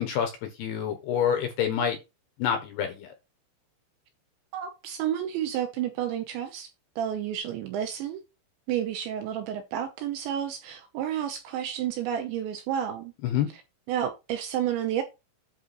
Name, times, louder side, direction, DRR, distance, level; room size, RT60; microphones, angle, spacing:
voice 1, 0.0-2.0 2.4-3.1 13.2-13.5, left 8 dB, 70° left, 2.6 m, -27 dB
voice 2, 4.5-6.7 7.0-8.2 8.7-13.1 13.9-15.0, right 10 dB, 80° right, 2.8 m, -30 dB
10.5 x 5.0 x 4.1 m
omnidirectional pair, 6.0 m